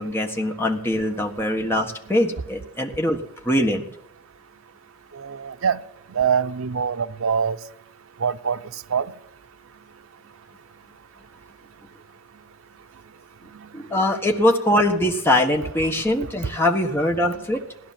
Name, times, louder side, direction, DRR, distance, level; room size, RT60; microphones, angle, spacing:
voice 1, 0.0-3.9 13.7-17.6, left 1 dB, 10° left, 1.5 m, -22 dB
voice 2, 5.2-5.8 6.1-7.6 8.2-8.6 8.9-9.1, right 6 dB, 80° right, 0.6 m, -23 dB
17.5 x 11.0 x 7.4 m
head